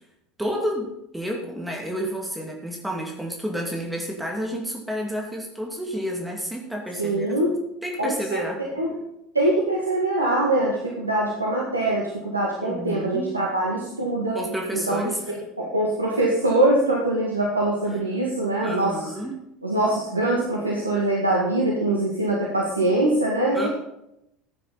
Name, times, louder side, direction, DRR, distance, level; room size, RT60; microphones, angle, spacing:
voice 1, 0.4-7.3 7.8-8.6 12.6-13.3 14.3-15.2 18.6-19.4 23.5-23.7, equal, 5° right, 0 dB, 2.5 m, -30 dB
voice 2, 7.0-7.5 8.0-8.4 8.8-8.9 9.3-14.4 14.7-19.0 19.6-23.7, right 1 dB, 85° right, -3 dB, 1.9 m, -23 dB
15.0 x 9.2 x 4.2 m, 0.82 s
figure-of-eight pair, 70°, 0 cm